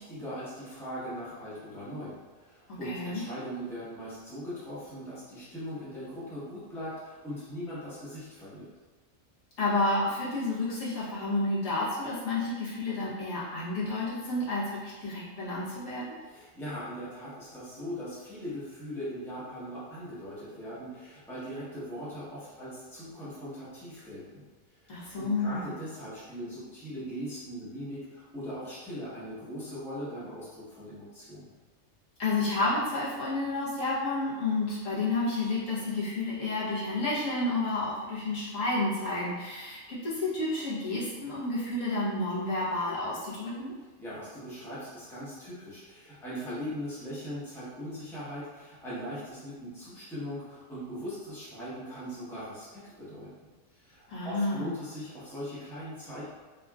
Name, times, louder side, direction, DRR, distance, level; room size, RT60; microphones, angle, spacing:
voice 1, 0.0-8.7 16.2-24.4 24.8-31.4 44.0-53.3 53.7-56.2, equal, ahead, -10 dB, 0.8 m, -40 dB
voice 2, 2.7-3.2 9.6-16.2 24.9-25.7 32.2-43.7 54.1-54.7, left 2 dB, 75° left, -9 dB, 1.4 m, -30 dB
3.6 x 2.4 x 2.3 m, 1.3 s
omnidirectional pair, 1.4 m